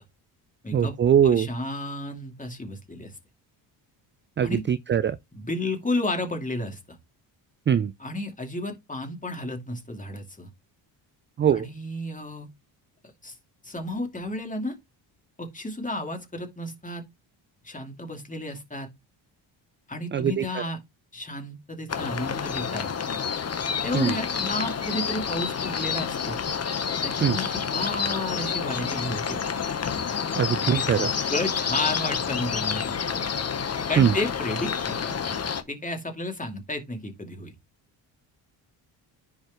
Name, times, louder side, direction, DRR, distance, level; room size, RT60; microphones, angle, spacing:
voice 1, 0.7-1.5 4.4-5.2 7.7-7.9 11.4-11.7 20.1-20.4 23.9-24.2 27.2-27.4 30.4-31.1 34.0-34.2, right 8 dB, 25° right, 0.4 m, -22 dB
voice 2, 1.2-3.2 4.4-4.6 5.3-7.0 8.0-10.5 11.5-12.5 13.2-13.4 13.6-14.8 15.4-17.0 17.6-18.9 19.9-20.8 21.1-22.9 23.8-26.4 27.0-29.4 30.6-33.3 33.9-35.2 35.7-37.5, left 1 dB, 15° left, 2.5 m, -32 dB
sound 1, 21.9-35.6, left 6 dB, 35° left, 1.0 m, -29 dB
10.5 x 5.0 x 3.0 m
supercardioid pair, 75°, 47 cm